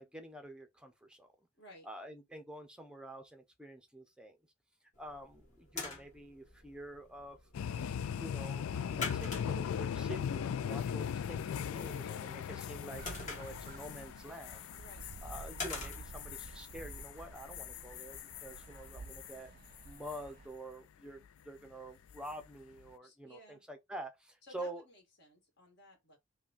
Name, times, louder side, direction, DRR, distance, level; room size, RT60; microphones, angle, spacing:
voice 1, 0.0-1.3 1.8-4.4 5.0-7.4 8.0-14.7 15.2-19.5 19.8-24.8, right 1 dB, 5° right, 0.7 m, -48 dB
voice 2, 1.5-1.9 11.8-12.1 14.8-15.1 23.0-23.6 24.4-26.2, equal, 50° left, 2.0 m, -57 dB
sound 1, 4.9-18.0, left 3 dB, 35° left, 1.5 m, -48 dB
sound 2, 7.5-19.4 19.7-20.2 22.1-22.4, left 8 dB, 75° left, 0.3 m, -39 dB
sound 3, 13.0-20.5, right 3 dB, 40° right, 0.3 m, -51 dB
5.5 x 2.3 x 2.5 m
head